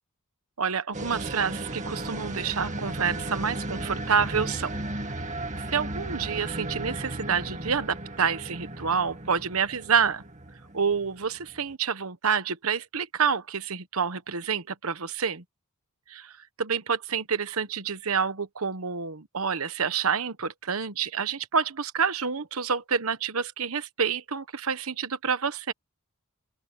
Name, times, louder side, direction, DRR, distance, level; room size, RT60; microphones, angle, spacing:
voice 1, 0.6-4.7 5.6-10.2 10.7-15.4 16.1-16.3 16.6-25.7, right 6 dB, 75° right, 1.1 m, -28 dB
sound 1, 0.9-11.7, right 1 dB, 35° right, 2.1 m, -35 dB
open air
head